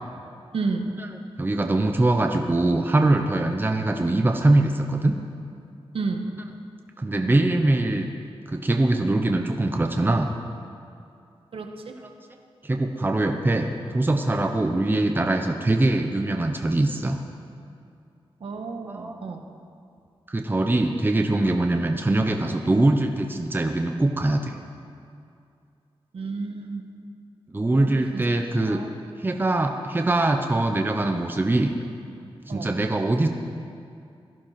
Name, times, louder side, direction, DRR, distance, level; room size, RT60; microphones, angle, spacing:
voice 1, 0.5-0.9 5.9-6.3 11.5-11.9 18.4-19.4 26.1-26.9 27.7-28.2 28.7-28.9 32.5-32.7, right 4 dB, 70° right, 4 dB, 1.5 m, -31 dB
voice 2, 1.4-5.2 7.0-8.1 8.5-10.3 12.0-12.1 12.6-17.2 18.9-19.2 20.3-24.5 27.5-28.8 29.2-31.7 32.5-33.3, right 2 dB, 20° right, 4 dB, 1.0 m, -22 dB
17.0 x 14.0 x 5.9 m, 2.4 s
wide cardioid pair, 120°, 10 cm